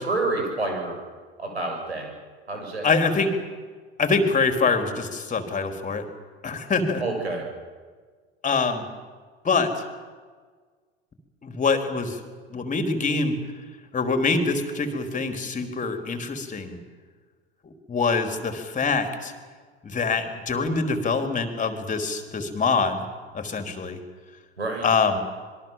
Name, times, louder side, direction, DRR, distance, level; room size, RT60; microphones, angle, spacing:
voice 1, 0.0-0.9 1.4-2.1 2.5-2.9 7.0-7.5 24.6-24.9, right 2 dB, 90° right, 2 dB, 6.9 m, -28 dB
voice 2, 2.8-3.3 4.0-6.0 6.4-7.0 8.4-8.9 9.4-9.8 11.4-12.2 12.5-13.3 13.9-16.8 17.6-19.3 19.8-23.0 23.3-24.0 24.8-25.2, left 4 dB, 25° left, 6 dB, 4.2 m, -24 dB
26.0 x 22.5 x 7.6 m, 1.5 s
figure-of-eight pair, 80°, 31 cm